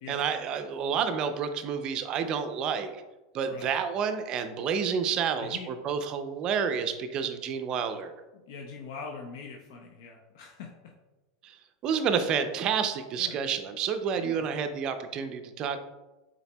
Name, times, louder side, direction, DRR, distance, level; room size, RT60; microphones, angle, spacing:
voice 1, 0.1-3.0 3.3-8.1 11.4-11.6 11.8-15.8, right 7 dB, 40° right, 8 dB, 0.4 m, -29 dB
voice 2, 5.4-5.7 8.5-10.9 11.8-12.0 13.2-13.4 14.1-14.5, left 5 dB, 70° left, 1 dB, 0.5 m, -43 dB
5.6 x 4.0 x 2.2 m, 1.1 s
supercardioid pair, 120°, 2 cm